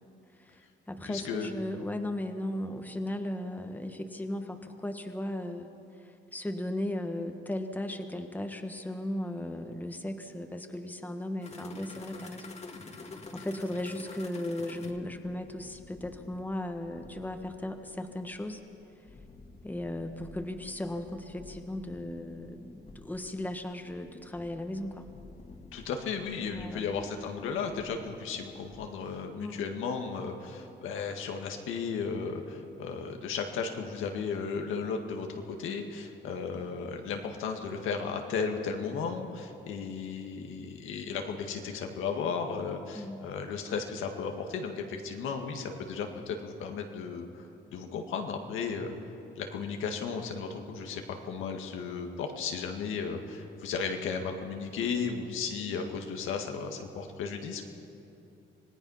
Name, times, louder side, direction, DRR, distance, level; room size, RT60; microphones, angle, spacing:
voice 1, 0.3-5.7 6.0-12.6 12.9-18.6 19.6-25.1 26.5-27.0 29.4-29.6 42.9-43.3, left 1 dB, 10° left, 5 dB, 1.5 m, -36 dB
voice 2, 1.1-1.5 25.7-48.9 49.4-57.7, left 5 dB, 90° left, 4 dB, 1.9 m, -35 dB
sound 1, 11.4-28.9, left 3 dB, 35° left, 1.8 m, -50 dB
25.5 x 18.5 x 5.7 m, 2.9 s
cardioid pair, 90°, 20 cm